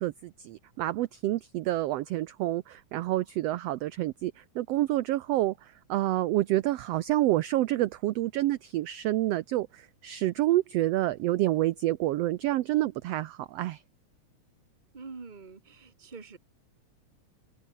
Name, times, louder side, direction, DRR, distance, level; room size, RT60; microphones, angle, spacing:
voice 1, 0.0-13.8, right 15 dB, 75° right, 1.5 m, -28 dB
voice 2, 14.9-16.4, right 4 dB, 20° right, 1.6 m, -45 dB
omnidirectional pair, 3.5 m